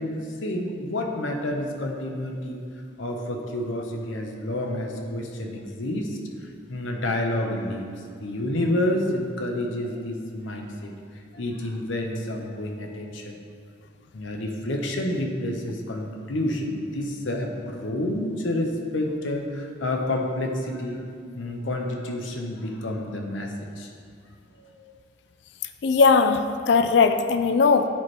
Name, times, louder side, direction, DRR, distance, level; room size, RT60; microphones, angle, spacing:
voice 1, 0.0-2.6 3.0-6.2 6.7-7.9 8.2-10.9 11.3-13.3 14.1-21.0 21.3-23.9 24.6-24.9, left 1 dB, 80° left, 2 dB, 0.9 m, -29 dB
voice 2, 25.8-27.9, left 4 dB, 60° left, 9 dB, 0.3 m, -19 dB
10.0 x 4.5 x 3.3 m, 2.3 s
head